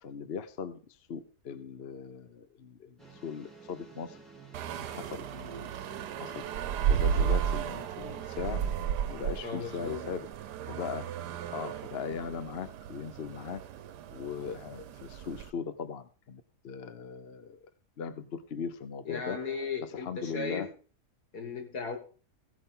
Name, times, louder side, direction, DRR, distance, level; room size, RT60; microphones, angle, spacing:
voice 1, 0.0-0.8 1.1-2.9 3.2-4.2 4.7-10.3 10.7-11.0 11.5-13.6 14.1-17.6 18.0-19.4 19.9-20.7, left 6 dB, 45° left, 0.9 m, -39 dB
sound 1, 3.0-8.8, right 4 dB, ahead, 3.4 m, -53 dB
sound 2, 4.5-15.5, right 8 dB, 85° right, 1.3 m, -34 dB
voice 2, 9.4-10.0 19.1-20.7 21.3-22.0, left 4 dB, 75° left, 2.5 m, -36 dB
16.0 x 8.7 x 3.8 m
omnidirectional pair, 1.7 m